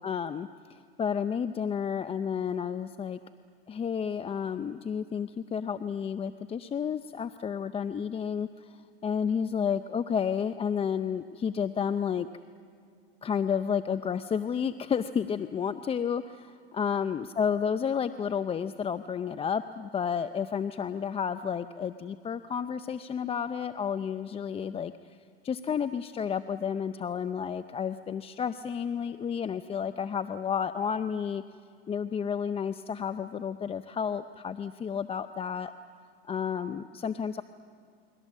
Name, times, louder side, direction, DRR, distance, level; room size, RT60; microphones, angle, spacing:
voice 1, 0.0-3.2 3.7-12.3 13.2-24.9 25.4-31.4 31.9-35.7 36.2-37.4, left 7 dB, 20° left, 11 dB, 0.6 m, -31 dB
29.0 x 22.5 x 7.3 m, 2.3 s
hypercardioid pair, 110°, 32 cm